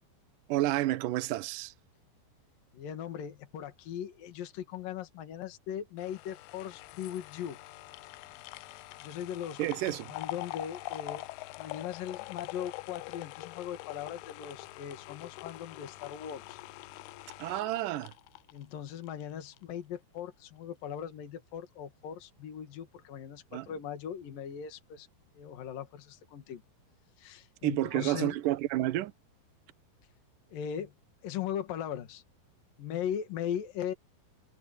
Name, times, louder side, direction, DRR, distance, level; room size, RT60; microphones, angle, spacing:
voice 1, 0.5-1.7 9.6-10.1 17.4-18.1 23.5-23.7 27.6-29.1, right 15 dB, 70° right, 2.1 m, -30 dB
voice 2, 2.7-7.6 9.0-9.6 10.1-11.2 11.6-16.6 18.5-25.1 25.3-26.6 27.2-28.4 30.5-30.9 31.2-32.2 32.8-33.9, left 9 dB, 60° left, 3.6 m, -39 dB
sound 1, 6.0-19.2 19.6-19.7, left 18 dB, 80° left, 2.6 m, -44 dB
omnidirectional pair, 4.6 m